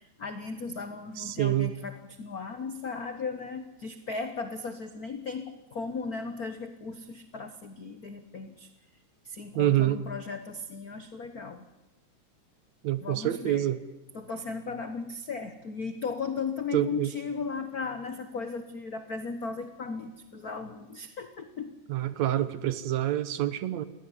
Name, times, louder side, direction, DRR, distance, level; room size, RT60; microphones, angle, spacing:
voice 1, 0.0-8.7 9.2-11.6 13.0-13.7 14.1-21.7 22.1-22.2, left 4 dB, 90° left, 9 dB, 0.8 m, -36 dB
voice 2, 1.2-1.7 9.6-10.0 12.8-13.8 16.7-17.1 21.9-23.8, right 13 dB, 70° right, 14 dB, 2.1 m, -27 dB
21.0 x 17.5 x 9.9 m, 1.0 s
omnidirectional pair, 3.4 m